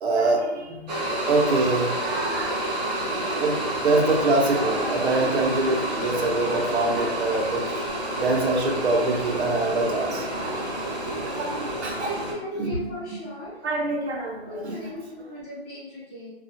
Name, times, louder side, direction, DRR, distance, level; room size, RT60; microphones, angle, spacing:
voice 1, 0.0-0.9 1.3-2.6 3.3-10.8 11.0-12.1 12.6-12.8 13.6-14.8, right 2 dB, 85° right, 1 dB, 0.7 m, -25 dB
sound 1, 0.9-12.3, right 1 dB, 40° right, 0.7 m, -29 dB
voice 2, 12.0-13.6 14.4-16.3, equal, 15° left, -14 dB, 0.4 m, -36 dB
2.3 x 2.1 x 2.6 m, 0.95 s
hypercardioid pair, 160°, 33 cm